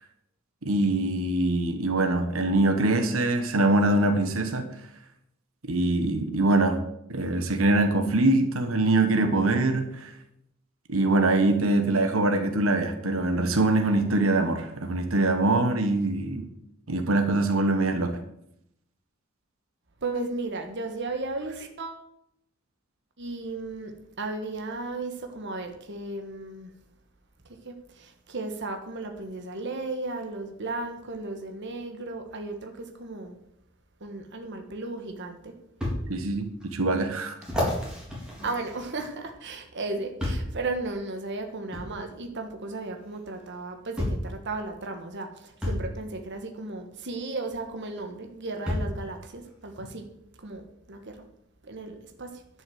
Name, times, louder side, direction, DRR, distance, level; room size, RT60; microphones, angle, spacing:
voice 1, 0.6-4.7 5.7-6.8 7.1-10.1 10.9-16.5 16.9-18.2 36.1-37.3, right 2 dB, 85° right, 6 dB, 1.3 m, -23 dB
voice 2, 20.0-22.0 23.2-26.7 27.4-33.4 34.0-35.5 38.1-50.1 50.4-51.2 51.6-52.4, right 2 dB, 60° right, 5 dB, 1.3 m, -35 dB
sound 1, 34.7-34.8 35.8-36.0 36.6-36.7 37.4-39.3 40.2-40.6 41.7-41.9 43.1-43.2 44.0-44.3 45.6-45.9 47.5-47.6 48.7-49.0 49.8-49.9, left 1 dB, 5° right, 3.7 m, -30 dB
10.5 x 6.3 x 7.8 m, 0.77 s
head